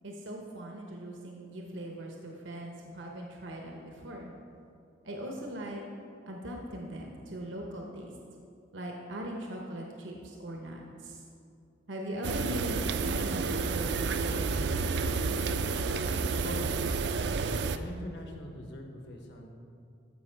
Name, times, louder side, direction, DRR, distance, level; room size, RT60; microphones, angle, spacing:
voice 1, 0.0-4.3 5.0-5.8 6.3-8.1 8.7-11.2 11.9-15.1, right 1 dB, 80° right, 0 dB, 0.9 m, -40 dB
sound 1, 12.2-17.8, right 4 dB, 65° right, 0.4 m, -30 dB
voice 2, 16.4-17.1 17.6-19.5, equal, 65° left, 3 dB, 1.1 m, -42 dB
13.5 x 5.2 x 4.5 m, 2.5 s
head